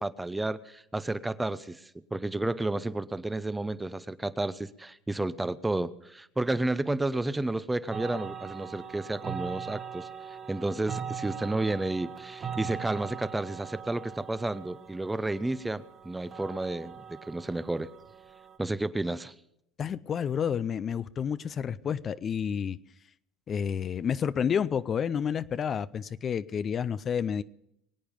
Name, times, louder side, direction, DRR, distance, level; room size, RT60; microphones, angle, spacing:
voice 1, 0.0-17.9 18.6-19.3, right 2 dB, 10° right, 15 dB, 0.6 m, -31 dB
sound 1, 7.9-18.6, right 7 dB, 35° right, 1.3 m, -41 dB
voice 2, 19.8-22.8 23.5-27.4, left 7 dB, 35° left, 15 dB, 0.4 m, -30 dB
23.0 x 8.8 x 5.2 m, 0.78 s
supercardioid pair, 100°, 0 cm